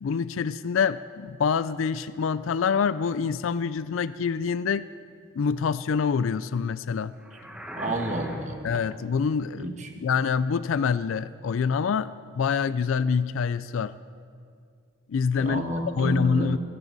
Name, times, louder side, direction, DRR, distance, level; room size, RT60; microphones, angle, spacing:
voice 1, 0.0-4.8 5.4-7.1 8.6-13.9 15.1-15.6 16.0-16.6, left 6 dB, 80° left, 15 dB, 0.4 m, -26 dB
sound 1, 7.2-8.8, equal, 5° right, 1.3 m, -39 dB
voice 2, 7.7-8.6 9.6-9.9 15.4-16.6, right 1 dB, 35° right, 4 dB, 1.4 m, -30 dB
22.0 x 15.5 x 4.0 m, 2.3 s
head